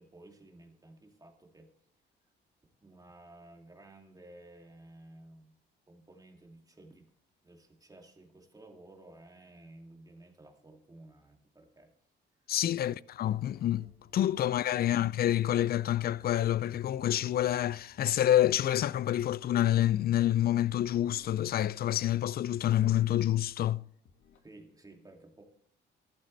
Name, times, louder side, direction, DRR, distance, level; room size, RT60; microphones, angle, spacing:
voice 1, 0.0-1.7 2.8-5.5 5.9-7.1 7.4-11.9 12.7-13.1 14.4-14.5 14.8-15.0 24.4-25.4, right 2 dB, 20° right, 2.4 m, -54 dB
voice 2, 12.5-23.8, left 12 dB, 50° left, 0.4 m, -28 dB
sound 1, 13.2-22.0 22.5-24.4, left 5 dB, 90° left, 1.7 m, -60 dB
14.0 x 11.5 x 3.3 m
cardioid pair, 90°, 20 cm